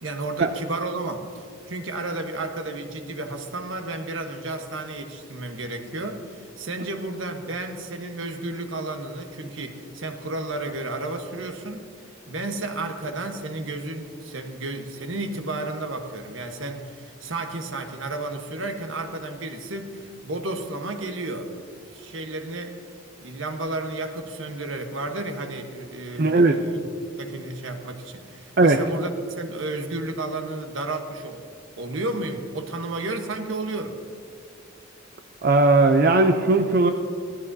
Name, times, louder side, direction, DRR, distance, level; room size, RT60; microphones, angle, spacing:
voice 1, 0.0-11.8 12.3-21.5 21.9-22.8 23.2-26.8 27.2-29.1 29.4-34.0, right 2 dB, 85° right, 5 dB, 1.2 m, -32 dB
voice 2, 26.2-26.6 28.6-28.8 35.4-36.9, right 2 dB, 50° right, 4 dB, 0.5 m, -17 dB
17.5 x 13.5 x 2.7 m, 2.2 s
head